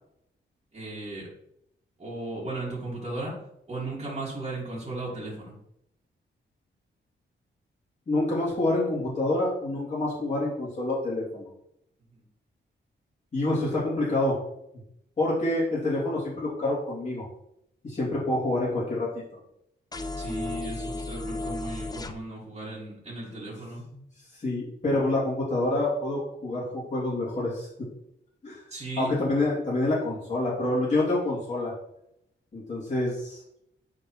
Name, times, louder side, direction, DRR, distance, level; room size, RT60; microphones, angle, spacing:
voice 1, 0.7-1.3 2.0-3.4 3.7-5.6 12.1-12.2 20.1-23.8 28.7-29.1, right 2 dB, 30° right, -7 dB, 2.2 m, -36 dB
voice 2, 8.1-11.5 13.3-14.4 15.2-17.2 17.8-19.1 24.3-27.7 28.4-28.6 29.0-31.7 32.5-33.4, left 2 dB, 35° left, -7 dB, 2.6 m, -27 dB
sound 1, 19.9-22.1, left 2 dB, 20° left, 0.5 m, -34 dB
10.5 x 4.0 x 3.1 m, 0.77 s
wide cardioid pair, 135°, 20 cm